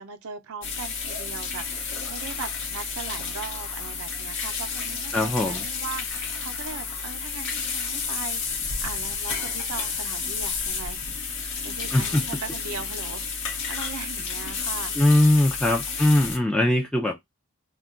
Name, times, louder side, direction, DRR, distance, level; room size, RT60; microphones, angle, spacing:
voice 1, 0.0-11.0 11.3-14.9, right 5 dB, 80° right, 0.5 m, -39 dB
sound 1, 0.6-16.4, left 5 dB, 60° left, 0.7 m, -31 dB
voice 2, 5.1-5.6 11.9-12.2 15.0-17.2, left 1 dB, 5° left, 0.3 m, -21 dB
2.3 x 2.2 x 3.6 m
head